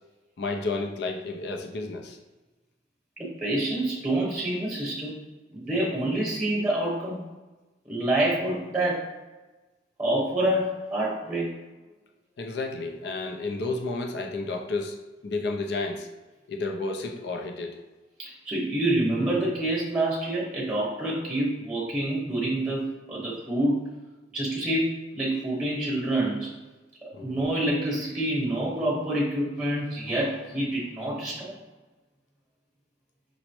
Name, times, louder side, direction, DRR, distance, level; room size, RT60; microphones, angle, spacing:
voice 1, 0.4-2.2 12.4-15.0 15.2-16.1 16.5-17.8 27.1-27.4, left 3 dB, 60° left, 3 dB, 0.5 m, -31 dB
voice 2, 3.2-5.2 5.5-7.2 7.9-9.1 10.0-11.5 18.2-23.8 24.3-26.5 27.2-31.5, right 1 dB, 10° right, -5 dB, 1.0 m, -27 dB
5.1 x 2.0 x 3.0 m, 1.2 s
head